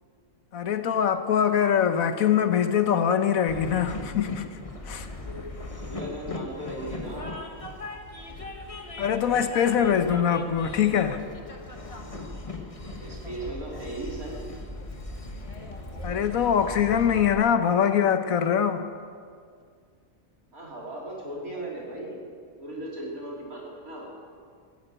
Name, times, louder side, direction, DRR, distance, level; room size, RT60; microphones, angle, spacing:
voice 1, 0.5-4.5 4.9-5.1 9.0-11.2 16.0-18.8, left 8 dB, 75° left, 1.3 m, -23 dB
Train, 3.5-17.4, left 2 dB, 25° left, 1.3 m, -38 dB
voice 2, 5.7-7.4 13.0-14.4 20.5-22.2 22.6-24.1, right 1 dB, 80° right, 4.3 m, -37 dB
14.5 x 9.8 x 8.9 m
omnidirectional pair, 1.5 m